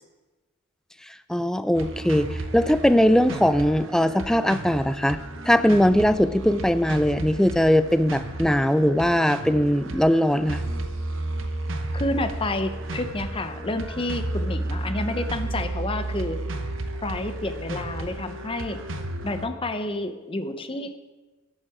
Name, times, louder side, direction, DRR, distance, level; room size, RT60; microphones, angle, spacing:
voice 1, 1.3-5.2 5.5-10.6, equal, 5° left, 13 dB, 0.3 m, -20 dB
sound 1, 1.7-19.5, right 2 dB, 75° right, 0.9 m, -33 dB
voice 2, 11.9-16.4 17.0-18.8 19.2-21.0, left 2 dB, 25° left, 9 dB, 0.7 m, -29 dB
12.5 x 7.4 x 4.9 m, 1.2 s
head